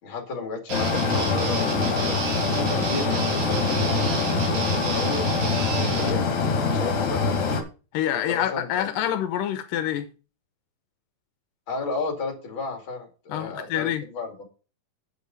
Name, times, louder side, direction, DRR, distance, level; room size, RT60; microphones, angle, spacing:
voice 1, 0.0-2.2 2.5-6.2 6.7-7.5 8.1-8.9 11.7-14.4, left 3 dB, 40° left, 2.9 m, -34 dB
sound 1, 0.7-7.6, left 4 dB, 60° left, 2.9 m, -24 dB
Guitar, 0.7-6.1, right 6 dB, 75° right, 3.2 m, -31 dB
voice 2, 7.9-10.1 13.3-14.0, left 11 dB, 85° left, 2.4 m, -26 dB
8.6 x 6.7 x 5.3 m
omnidirectional pair, 3.9 m